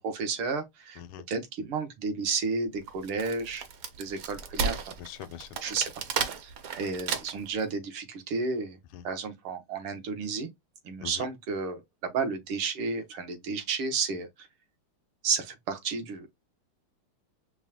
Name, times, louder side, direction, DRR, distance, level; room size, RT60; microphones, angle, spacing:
voice 1, 0.0-1.0 1.3-3.6 4.0-4.8 5.6-5.9 6.4-8.8 9.0-10.5 10.9-14.5 15.2-16.3, right 4 dB, 85° right, 2.0 m, -32 dB
Wood, 2.9-7.6, right 5 dB, 65° right, 0.9 m, -33 dB
voice 2, 5.0-5.5 8.9-9.0 11.0-11.3, left 11 dB, 85° left, 1.4 m, -42 dB
5.4 x 2.2 x 2.8 m
omnidirectional pair, 2.3 m